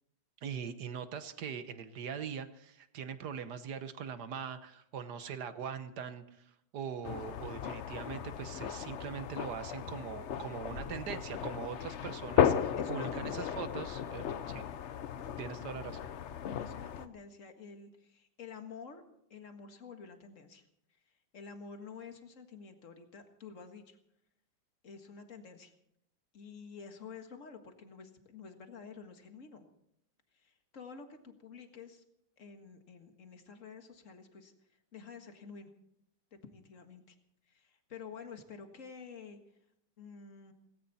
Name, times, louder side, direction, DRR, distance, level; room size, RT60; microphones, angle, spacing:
voice 1, 0.4-14.6 15.4-16.0, right 7 dB, 60° right, 11 dB, 1.5 m, -42 dB
sound 1, 7.0-17.1, left 8 dB, 70° left, 0.6 m, -35 dB
voice 2, 12.7-13.5 14.4-14.6 16.5-19.0 19.3-20.7 21.3-24.0 24.8-25.7 26.3-29.6 30.3-32.0 32.4-34.5 34.9-35.7 36.4-37.2 37.5-39.4 40.0-40.5, left 5 dB, 40° left, 6 dB, 1.9 m, -49 dB
18.5 x 17.0 x 4.2 m, 0.75 s
omnidirectional pair, 2.1 m